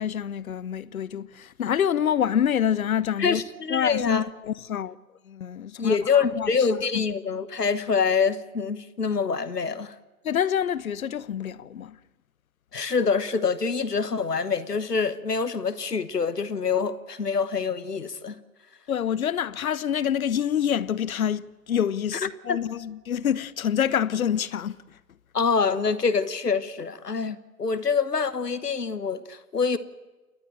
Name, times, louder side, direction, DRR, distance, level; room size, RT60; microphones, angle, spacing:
voice 1, 0.0-3.4 3.7-5.0 5.3-7.1 10.2-12.0 18.9-24.8, left 9 dB, 65° left, 0.9 m, -27 dB
voice 2, 3.2-4.2 5.8-9.9 12.7-18.4 22.1-22.2 22.5-22.6 25.3-29.8, left 5 dB, 85° left, 1.3 m, -25 dB
29.0 x 10.5 x 8.9 m
figure-of-eight pair, 125°, 46 cm